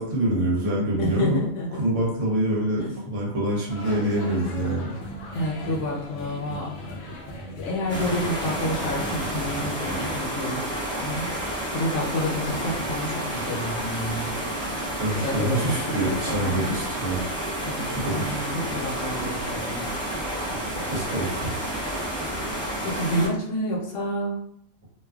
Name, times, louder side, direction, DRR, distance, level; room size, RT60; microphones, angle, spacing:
voice 1, 0.0-1.4 1.7-4.9 15.0-17.2 17.9-18.4 20.9-21.5, right 1 dB, 65° right, -3 dB, 1.0 m, -26 dB
voice 2, 1.0-1.8 2.8-2.9 5.3-7.1 7.6-10.7 11.0-11.3 11.7-14.3 15.2-15.6 16.0-16.2 16.4-16.7 17.6-19.8 20.4-20.9 22.8-24.4, equal, 65° left, -3 dB, 1.0 m, -29 dB
sound 1, 3.7-10.2, equal, 85° left, 0.4 m, -37 dB
sound 2, 7.9-23.3, right 1 dB, 5° left, 0.6 m, -30 dB
2.5 x 2.3 x 2.3 m, 0.71 s
omnidirectional pair, 1.4 m